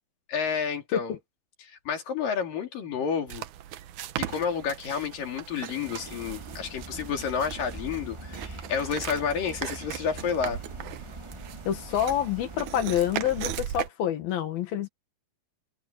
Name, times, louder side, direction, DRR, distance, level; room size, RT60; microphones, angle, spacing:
voice 1, 0.3-1.2 1.6-3.4 4.3-10.6, left 6 dB, 70° left, 4.7 m, -30 dB
sound 1, 3.3-13.9, right 12 dB, 70° right, 2.1 m, -38 dB
sound 2, 5.8-13.6, right 1 dB, 15° right, 1.1 m, -43 dB
voice 2, 11.7-14.9, left 10 dB, 90° left, 3.7 m, -27 dB
omnidirectional pair, 4.1 m